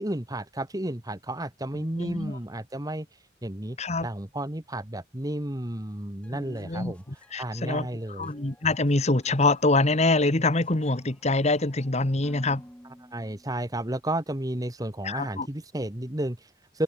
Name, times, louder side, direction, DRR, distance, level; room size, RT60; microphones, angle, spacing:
voice 1, 0.0-3.1 3.4-3.8 4.0-7.0 7.3-8.3 13.1-16.8, right 1 dB, 20° right, 1.8 m, -32 dB
voice 2, 2.0-2.4 3.8-4.1 6.3-6.9 7.3-7.9 8.2-12.6 15.0-15.5, left 2 dB, 35° left, 1.5 m, -25 dB
sound 1, 6.2-14.0, equal, 5° left, 6.5 m, -55 dB
open air
head